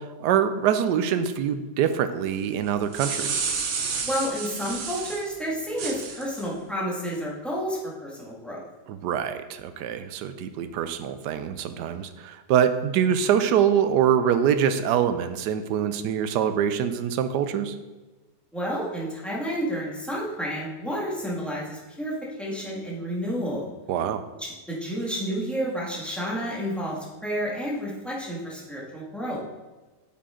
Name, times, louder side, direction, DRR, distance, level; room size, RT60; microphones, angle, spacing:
voice 1, 0.0-3.4 8.9-17.8 23.9-24.2, right 8 dB, 80° right, 10 dB, 1.2 m, -24 dB
sound 1, 2.7-5.3 5.8-6.5, right 5 dB, 55° right, 1.0 m, -30 dB
voice 2, 4.0-8.6 18.5-22.1 22.4-23.7 24.4-29.4, equal, ahead, -5 dB, 1.7 m, -30 dB
8.4 x 5.7 x 3.8 m, 1.2 s
omnidirectional pair, 1.8 m